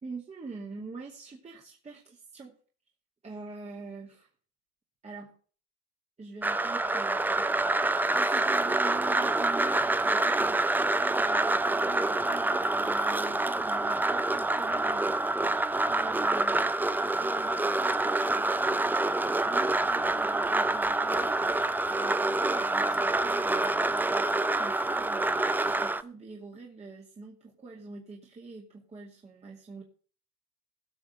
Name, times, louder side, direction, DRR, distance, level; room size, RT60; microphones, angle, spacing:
voice 1, 0.0-2.6 3.2-4.3 5.0-5.3 6.2-7.5 8.1-15.2 15.9-16.8 17.2-21.5 21.9-23.7 24.6-25.4 25.8-29.8, right 3 dB, 20° right, -2 dB, 2.4 m, -45 dB
sound 1, 6.4-26.0, right 2 dB, 5° right, 0.5 m, -27 dB
17.5 x 5.9 x 5.6 m, 0.43 s
hypercardioid pair, 90°, 30 cm